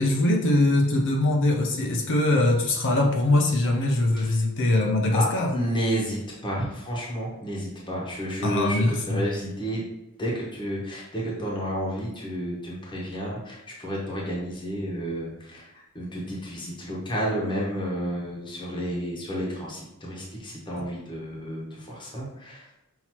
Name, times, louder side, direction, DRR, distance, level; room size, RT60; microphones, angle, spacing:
voice 1, 0.0-5.5 8.4-9.2, left 2 dB, 55° left, 1 dB, 0.6 m, -22 dB
voice 2, 5.1-9.9 10.2-22.7, equal, 20° left, -4 dB, 1.0 m, -31 dB
5.7 x 2.8 x 3.0 m, 0.91 s
head